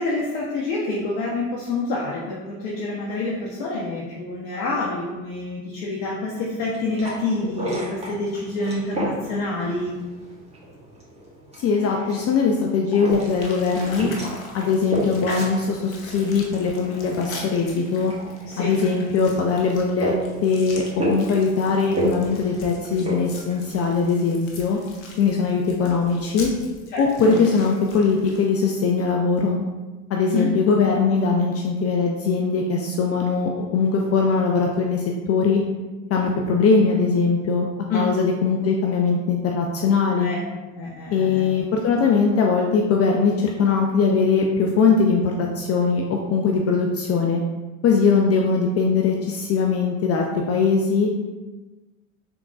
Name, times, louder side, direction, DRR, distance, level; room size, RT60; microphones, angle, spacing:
voice 1, 0.0-10.0 18.5-18.7 26.9-27.5 30.1-30.5 37.9-38.1 40.2-40.4 40.7-41.5, left 2 dB, 55° left, -4 dB, 0.8 m, -27 dB
sound 1, 6.5-24.3, right 1 dB, 15° right, 1.5 m, -33 dB
voice 2, 11.6-14.1 14.5-18.1 18.6-20.1 20.4-24.8 25.2-26.5 27.0-29.6 30.1-35.6 36.1-37.7 37.9-40.3 41.1-47.4 47.8-51.1, left 5 dB, 35° left, 0 dB, 0.5 m, -21 dB
sound 2, 13.1-29.1, left 2 dB, 90° left, 0.7 m, -42 dB
3.8 x 3.6 x 2.3 m, 1.2 s
hypercardioid pair, 70°, 40 cm